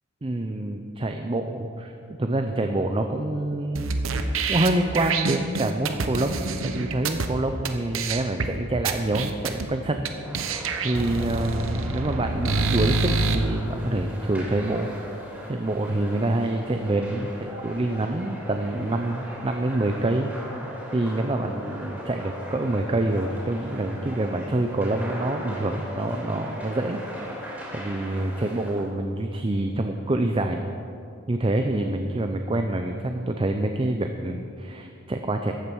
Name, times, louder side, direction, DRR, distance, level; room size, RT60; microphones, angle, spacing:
voice 1, 0.2-1.9 2.2-3.9 4.5-10.1 10.8-14.9 15.5-20.3 20.9-27.0 27.7-30.7 31.3-35.5, right 1 dB, 25° right, 5 dB, 0.5 m, -26 dB
sound 1, 3.8-7.3 7.7-7.8 7.9-8.5 8.9-9.7 10.1-10.2 10.3-13.4, right 4 dB, 80° right, 0.9 m, -26 dB
sound 2, 10.2-28.8, equal, 10° right, 3.3 m, -39 dB
14.0 x 8.6 x 6.2 m, 2.6 s
head